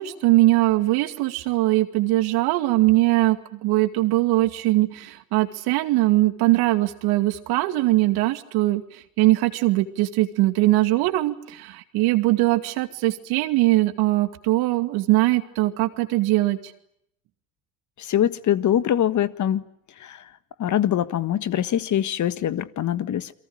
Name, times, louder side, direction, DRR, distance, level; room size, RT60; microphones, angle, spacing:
voice 1, 0.0-16.6, right 18 dB, 65° right, 9 dB, 2.5 m, -21 dB
voice 2, 18.0-19.6 20.0-20.2 20.6-23.3, left 11 dB, 45° left, 13 dB, 1.6 m, -23 dB
29.0 x 23.5 x 8.9 m, 0.74 s
hypercardioid pair, 65°, 40 cm